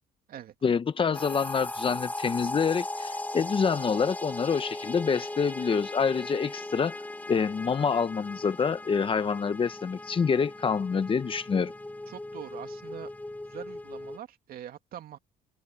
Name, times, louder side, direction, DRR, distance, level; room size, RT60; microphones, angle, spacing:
voice 1, 0.6-7.0 7.3-11.7, left 6 dB, 30° left, 1.1 m, -27 dB
sound 1, 1.1-14.2, left 2 dB, 10° left, 1.0 m, -38 dB
voice 2, 12.1-13.1 13.5-15.2, right 11 dB, 60° right, 2.4 m, -43 dB
open air
cardioid pair, 110°, 17 cm